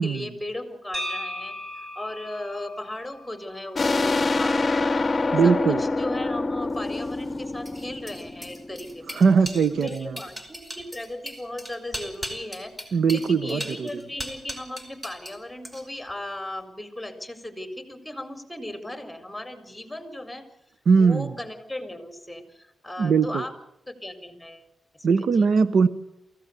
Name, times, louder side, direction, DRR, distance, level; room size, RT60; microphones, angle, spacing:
voice 1, 0.0-1.5 1.9-9.2 9.7-20.5 21.0-23.5 23.9-24.7 24.9-25.5, left 1 dB, 5° left, 7 dB, 4.3 m, -37 dB
sound 1, 0.9-5.0, left 1 dB, 35° right, 7.0 m, -38 dB
sound 2, 3.7-9.1, left 3 dB, 40° left, 0.8 m, -26 dB
voice 2, 5.3-5.8 9.1-10.2 12.9-13.9 20.9-21.3 23.0-23.4 25.0-25.9, right 5 dB, 75° right, 14 dB, 1.0 m, -20 dB
sound 3, 6.8-15.4 15.6-16.1, equal, 15° right, 5.1 m, -38 dB
23.5 x 16.0 x 8.1 m, 0.79 s
cardioid pair, 70°, 0 cm